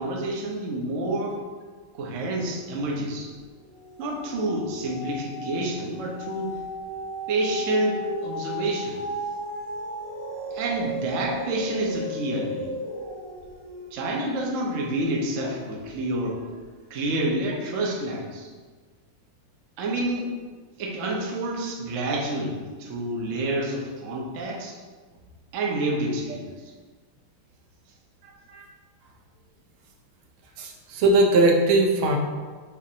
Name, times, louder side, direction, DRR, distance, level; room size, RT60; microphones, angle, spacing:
voice 1, 0.0-1.4 1.9-3.3 4.0-6.5 7.3-9.0 10.5-12.7 13.9-16.4 16.9-18.5 19.8-20.3 20.8-24.8 25.5-26.7, right 1 dB, 70° right, -1 dB, 0.7 m, -28 dB
sound 1, 2.6-3.1 3.5-15.9 16.5-16.6, equal, 50° right, 1.2 m, -36 dB
voice 2, 30.6-32.2, right 2 dB, 85° right, 1 dB, 1.5 m, -20 dB
6.4 x 2.5 x 2.8 m, 1.5 s
omnidirectional pair, 2.3 m